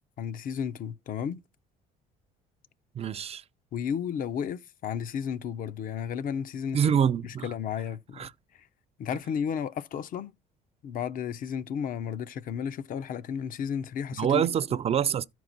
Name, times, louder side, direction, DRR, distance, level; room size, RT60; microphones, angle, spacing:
voice 1, 0.2-1.4 3.7-6.8 7.2-8.3 8.5-8.7 9.0-10.4 10.8-14.4, left 8 dB, 55° left, 0.6 m, -33 dB
voice 2, 3.0-3.4 6.7-7.5 8.2-8.3 14.2-15.2, right 8 dB, 35° right, 0.4 m, -25 dB
13.0 x 4.7 x 3.9 m
cardioid pair, 110°, 17 cm